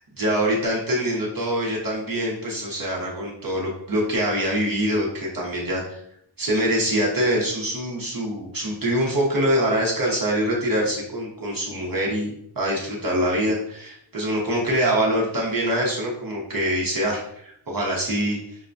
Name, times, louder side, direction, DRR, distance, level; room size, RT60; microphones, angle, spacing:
voice 1, 0.1-6.0 6.4-12.3 12.6-18.4, equal, 45° right, -3 dB, 0.8 m, -24 dB
5.5 x 2.2 x 2.6 m, 0.72 s
wide cardioid pair, 95°, 49 cm